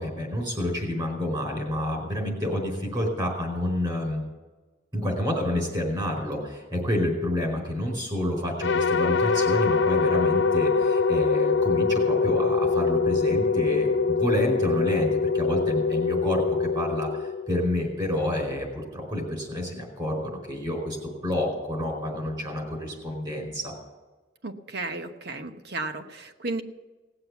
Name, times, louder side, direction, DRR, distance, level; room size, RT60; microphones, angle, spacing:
voice 1, 0.0-4.2 4.9-23.7, left 1 dB, 25° right, 2 dB, 4.6 m, -29 dB
sound 1, 8.6-17.9, left 4 dB, 70° left, 0.7 m, -24 dB
voice 2, 24.4-26.6, right 3 dB, 55° right, 7 dB, 1.1 m, -33 dB
18.5 x 7.8 x 8.2 m, 1.3 s
head